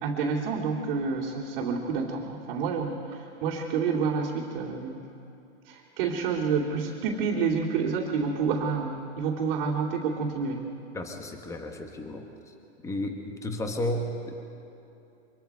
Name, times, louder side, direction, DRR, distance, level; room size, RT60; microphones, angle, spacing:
voice 1, 0.0-5.0 5.7-10.6, right 5 dB, 45° right, -5 dB, 2.5 m, -29 dB
voice 2, 10.9-12.5 12.8-14.4, left 1 dB, 10° left, 4 dB, 1.4 m, -33 dB
25.0 x 22.0 x 4.7 m, 2.7 s
hypercardioid pair, 145°, 35 cm